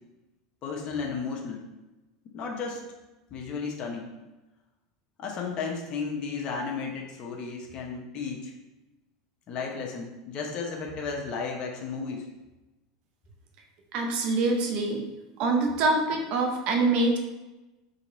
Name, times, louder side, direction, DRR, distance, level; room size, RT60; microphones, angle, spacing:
voice 1, 0.6-1.7 2.3-2.8 3.3-4.1 5.2-8.5 9.5-12.3, left 5 dB, 45° left, 0 dB, 0.8 m, -34 dB
voice 2, 13.9-15.0 15.4-17.2, right 3 dB, 55° right, 2 dB, 0.8 m, -25 dB
4.0 x 2.9 x 4.0 m, 1.1 s
supercardioid pair, 105°, 2 cm